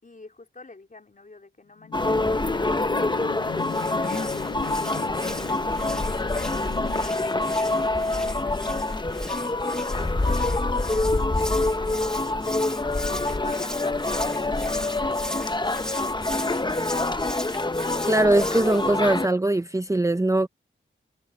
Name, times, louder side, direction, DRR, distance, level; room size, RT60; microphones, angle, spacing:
voice 1, 0.0-3.4 3.8-12.5 13.0-15.3, left 3 dB, 40° left, 4.4 m, -47 dB
sound 1, 1.8-9.6 10.0-10.1, left 8 dB, 80° left, 0.7 m, -40 dB
sound 2, 1.9-19.3, left 2 dB, 20° left, 0.9 m, -26 dB
Hands, 3.5-18.9, equal, 5° left, 2.3 m, -38 dB
voice 2, 18.1-20.5, right 2 dB, 15° right, 0.7 m, -21 dB
wide cardioid pair, 85°, 21 cm